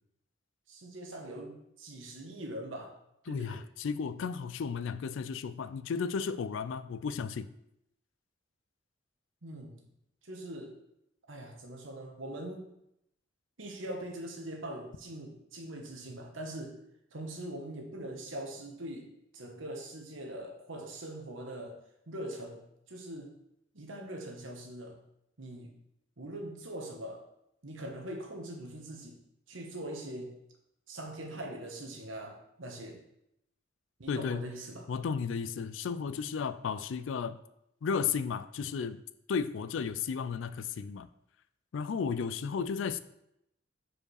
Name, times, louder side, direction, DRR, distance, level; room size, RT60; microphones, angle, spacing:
voice 1, 0.7-2.9 3.2-3.6 9.4-9.8 10.2-10.7 11.3-12.6 13.6-16.7 17.1-19.1 19.3-21.8 22.1-22.6 22.9-23.3 23.7-25.0 25.4-25.7 26.2-27.2 27.6-29.2 29.5-30.3 30.9-33.0 34.0-34.9, right 1 dB, 75° right, 2 dB, 1.2 m, -42 dB
voice 2, 3.3-7.5 34.1-34.4 34.9-37.4 37.8-39.0 39.3-41.1 41.7-43.0, left 6 dB, 70° left, 14 dB, 0.4 m, -34 dB
5.0 x 4.8 x 4.7 m, 0.80 s
head